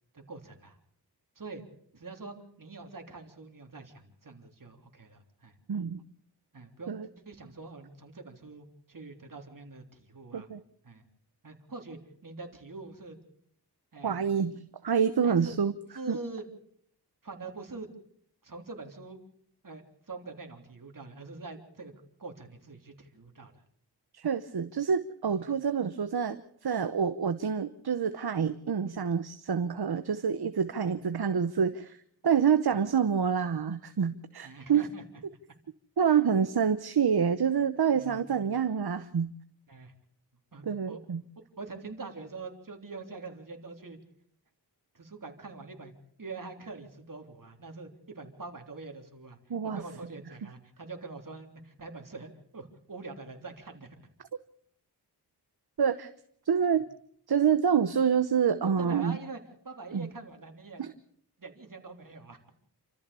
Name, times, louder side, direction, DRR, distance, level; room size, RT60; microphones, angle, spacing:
voice 1, 0.1-0.8 1.4-1.6 1.9-5.6 6.5-7.0 7.3-10.5 10.8-11.0 11.4-13.2 13.9-14.2 15.2-15.6 15.9-16.4 17.2-17.9 18.4-19.2 19.6-21.9 22.2-23.5 30.8-30.9 34.4-35.0 37.9-38.4 39.7-39.9 40.5-41.0 41.4-44.0 44.9-45.9 46.2-49.4 49.6-54.0 58.8-60.8 61.4-62.4, right 3 dB, 55° right, 4 dB, 3.6 m, -44 dB
voice 2, 5.7-6.0 6.9-7.1 10.3-10.6 14.0-15.7 16.1-16.2 24.1-32.0 32.2-34.9 36.0-39.3 40.6-41.2 49.5-49.8 55.8-56.1 56.5-56.9 57.3-59.2 59.9-60.1 60.8-60.9, right 7 dB, 70° right, 11 dB, 1.0 m, -27 dB
28.5 x 14.0 x 7.0 m, 0.67 s
wide cardioid pair, 80°, 40 cm